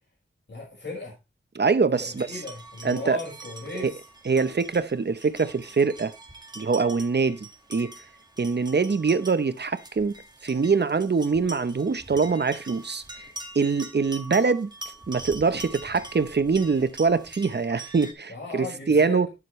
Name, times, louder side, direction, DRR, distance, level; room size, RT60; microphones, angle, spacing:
voice 1, 0.5-1.2 1.9-4.0 18.3-19.3, left 3 dB, 60° left, 5.8 m, -37 dB
voice 2, 1.5-2.3 2.8-3.2 3.8-3.9 4.3-6.1 6.6-7.9 8.4-10.2 10.4-13.0 13.5-14.7 15.1-19.3, right 4 dB, 55° right, 0.9 m, -24 dB
sound 1, 1.9-18.1, right 1 dB, 20° right, 1.9 m, -44 dB
11.0 x 7.4 x 3.2 m
wide cardioid pair, 65°, 20 cm